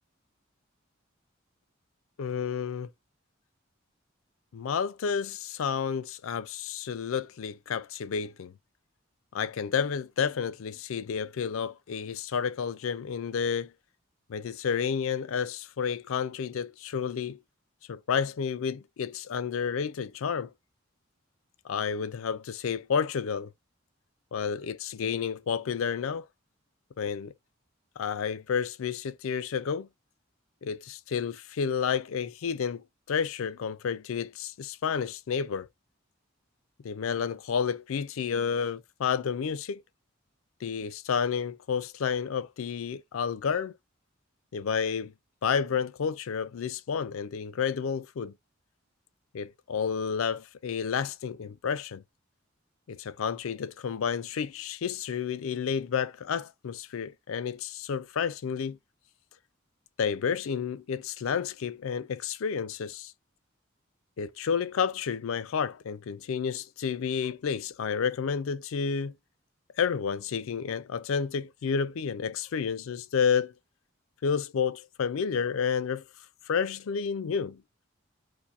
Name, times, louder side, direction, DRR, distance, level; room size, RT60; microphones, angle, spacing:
voice 1, 2.2-2.9 4.5-8.5 9.3-13.7 14.3-17.4 17.9-20.5 21.6-23.5 24.3-26.3 27.0-27.3 28.0-29.9 30.6-35.7 36.8-39.8 40.6-43.8 44.5-45.1 45.4-48.3 49.3-52.0 52.9-58.8 60.0-63.1 64.2-69.1 69.8-73.5 74.2-76.0 76.5-77.6, left 6 dB, 80° left, 0.4 m, -30 dB
4.1 x 2.6 x 2.5 m
head